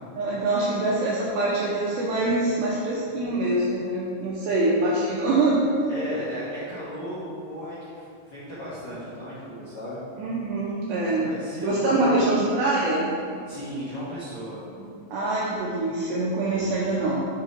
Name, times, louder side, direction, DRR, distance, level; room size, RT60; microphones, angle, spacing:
voice 1, 0.2-5.8 10.2-11.3 11.6-13.1 15.1-17.2, right 2 dB, 80° right, -6 dB, 2.5 m, -24 dB
voice 2, 5.9-10.0 11.1-12.2 13.5-14.6 16.4-16.8, equal, 70° left, -11 dB, 2.0 m, -35 dB
7.6 x 6.6 x 3.9 m, 2.4 s
omnidirectional pair, 5.9 m